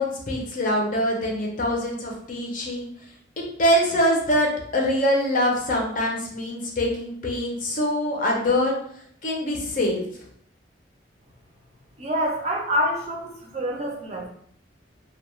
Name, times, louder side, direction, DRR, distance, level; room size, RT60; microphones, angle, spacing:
voice 1, 0.0-2.9 3.6-8.7 9.2-10.2, equal, 45° left, -1 dB, 0.6 m, -24 dB
voice 2, 12.0-14.3, equal, 35° right, 0 dB, 0.5 m, -26 dB
2.2 x 2.2 x 3.0 m, 0.66 s
head